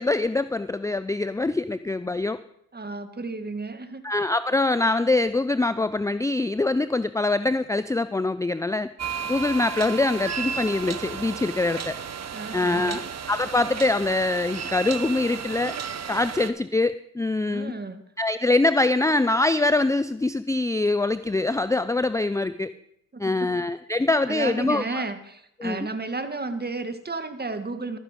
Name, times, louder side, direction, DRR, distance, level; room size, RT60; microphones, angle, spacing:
voice 1, 0.0-2.4 4.0-8.9 9.3-12.0 12.5-15.7 16.1-17.7 18.2-22.7 23.2-25.0 25.6-25.9, left 2 dB, 10° left, 14 dB, 0.5 m, -24 dB
voice 2, 2.7-4.0 12.3-13.0 17.5-18.0 23.1-23.6 24.3-28.0, right 3 dB, 25° right, 9 dB, 1.8 m, -32 dB
sound 1, 9.0-16.5, right 7 dB, 45° right, 1.1 m, -33 dB
12.5 x 10.0 x 5.2 m, 0.74 s
supercardioid pair, 50°, 36 cm